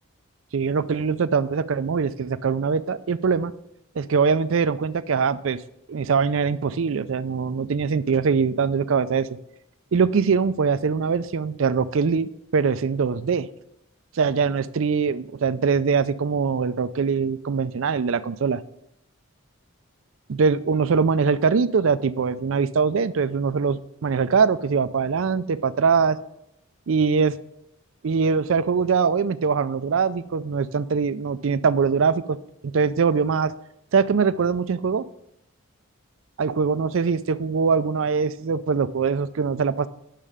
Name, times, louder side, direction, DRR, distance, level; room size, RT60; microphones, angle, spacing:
voice 1, 0.5-3.5 4.0-5.6 5.9-9.3 9.9-13.5 14.2-18.6 20.3-26.2 26.9-27.4 28.0-32.4 32.6-33.5 33.9-35.1 36.4-39.9, right 5 dB, 65° right, 14 dB, 0.4 m, -22 dB
9.0 x 6.7 x 4.9 m, 0.81 s
head